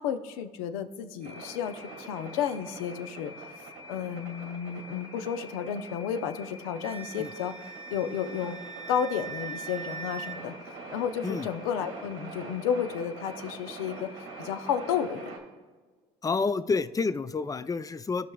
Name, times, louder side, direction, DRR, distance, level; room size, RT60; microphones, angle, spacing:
voice 1, 0.0-8.6 8.9-15.3, left 8 dB, 85° left, 10 dB, 0.6 m, -32 dB
sound 1, 1.2-15.4, right 2 dB, 80° right, 1.6 m, -44 dB
Wind instrument woodwind instrument, 6.8-10.4, right 6 dB, 35° right, 0.9 m, -41 dB
voice 2, 16.2-18.3, left 4 dB, 20° left, 14 dB, 0.4 m, -29 dB
16.5 x 5.8 x 2.3 m, 1.4 s
hypercardioid pair, 70°, 17 cm